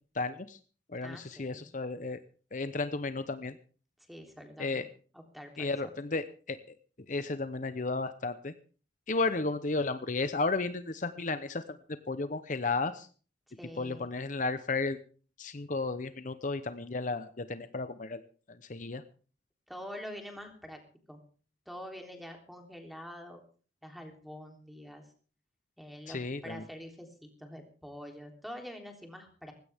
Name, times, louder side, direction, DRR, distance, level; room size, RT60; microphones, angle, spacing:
voice 1, 0.1-0.6 0.9-2.2 2.5-3.5 4.6-4.9 5.6-6.6 7.1-8.5 9.1-11.6 12.1-13.1 13.8-15.0 15.4-18.2 18.7-19.0 26.1-26.6, left 3 dB, 45° left, 11 dB, 0.8 m, -33 dB
voice 2, 1.0-1.7 4.1-4.9 5.1-5.7 13.6-14.1 19.7-20.8 21.1-21.2 21.6-23.4 23.8-25.0 25.8-29.5, equal, ahead, 3 dB, 3.3 m, -46 dB
19.5 x 16.5 x 3.6 m, 0.39 s
head